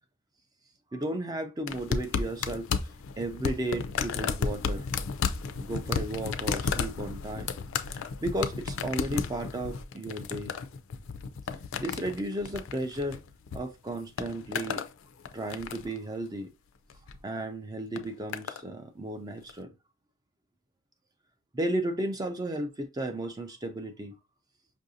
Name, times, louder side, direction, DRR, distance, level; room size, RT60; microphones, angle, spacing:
voice 1, 0.9-2.9 3.2-4.9 5.6-7.5 7.9-10.5 11.8-13.2 13.5-14.8 15.3-16.5 17.2-19.7 21.5-24.1, right 1 dB, 15° right, 0.3 m, -34 dB
sound 1, 1.7-13.6 13.9-14.9 15.3-16.0 16.9-17.2 18.0-18.6 19.5-19.6, left 5 dB, 60° left, 0.4 m, -33 dB
5.4 x 2.5 x 2.6 m
head